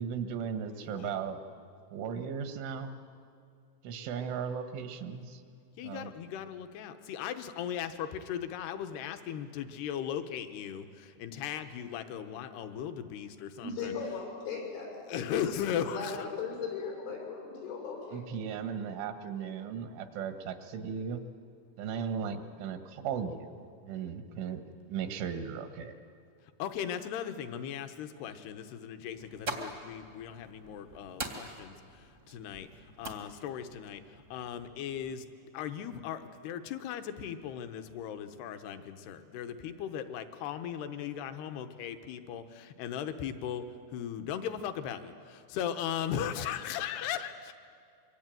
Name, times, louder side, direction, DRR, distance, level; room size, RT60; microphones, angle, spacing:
voice 1, 0.0-1.4 1.9-2.9 3.8-5.4 5.8-6.1 18.1-21.2 21.8-26.0, right 7 dB, 85° right, 7 dB, 3.9 m, -37 dB
voice 2, 0.6-1.2 5.8-13.9 15.1-16.2 26.6-31.7 32.3-32.7 33.0-34.0 34.3-35.2 35.5-43.6 43.9-47.5, left 9 dB, 70° left, 8 dB, 2.9 m, -37 dB
voice 3, 13.6-15.0 15.9-18.2, left 5 dB, 90° left, -1 dB, 8.9 m, -38 dB
sound 1, 29.1-35.1, right 2 dB, 50° right, 0.8 m, -44 dB
25.0 x 23.5 x 9.1 m, 2.4 s
omnidirectional pair, 5.4 m